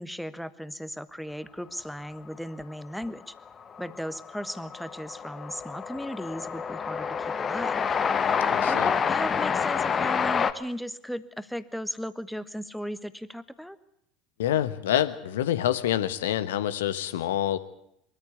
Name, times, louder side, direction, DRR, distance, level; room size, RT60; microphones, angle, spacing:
voice 1, 0.0-3.3 3.8-7.8 8.7-13.8, equal, ahead, 14 dB, 1.3 m, -36 dB
Train, 3.1-3.2 3.4-10.5, left 6 dB, 30° left, 1.2 m, -28 dB
voice 2, 8.5-8.9 14.4-17.6, left 11 dB, 65° left, 13 dB, 1.3 m, -27 dB
23.5 x 14.0 x 9.5 m, 0.74 s
figure-of-eight pair, 70°, 0 cm